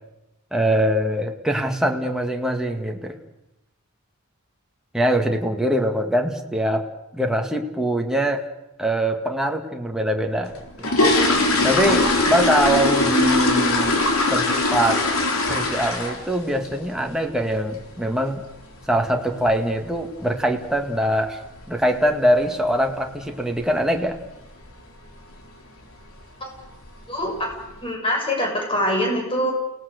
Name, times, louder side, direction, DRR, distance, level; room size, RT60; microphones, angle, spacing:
voice 1, 0.5-3.2 4.9-6.8 7.1-8.5 8.8-10.9 11.6-14.0 14.3-15.1 15.5-18.4 18.9-21.4 21.7-24.2, equal, 5° right, 2 dB, 1.9 m, -23 dB
sound 1, 10.5-16.4 16.6-16.9 17.3-17.4 17.7-17.9 18.3-18.5 18.7-18.8 19.4-19.5 19.8-19.9 20.5-20.8 21.0-21.1 21.5-21.8 22.1-22.2 22.6-22.7 23.3-23.6 24.0-24.3 24.6-24.7 25.2-25.3 26.0-26.2 26.6-27.1 27.5-27.6, left 2 dB, 70° left, 4.0 m, -21 dB
voice 2, 27.1-27.5 27.8-29.5, equal, 25° left, 1 dB, 6.7 m, -24 dB
29.5 x 18.0 x 6.5 m, 0.89 s
head